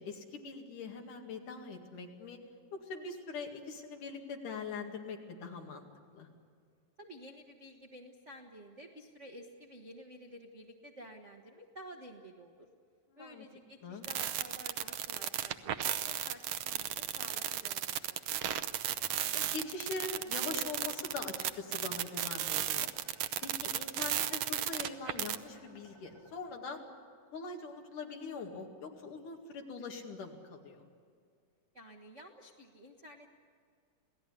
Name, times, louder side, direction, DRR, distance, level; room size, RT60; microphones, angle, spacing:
voice 1, 0.0-2.4 2.7-5.9 6.1-6.3 13.1-13.5 13.8-14.1 19.3-22.9 23.4-26.8 27.3-30.8, left 4 dB, 70° left, 2 dB, 3.7 m, -42 dB
voice 2, 7.0-12.7 13.2-18.2 31.7-33.3, equal, 50° right, 2 dB, 0.8 m, -52 dB
sound 1, 14.0-25.4, right 11 dB, 80° right, 1.4 m, -34 dB
sound 2, 18.7-26.5, right 1 dB, 40° left, 7.8 m, -63 dB
28.0 x 17.5 x 10.0 m, 2.1 s
omnidirectional pair, 3.8 m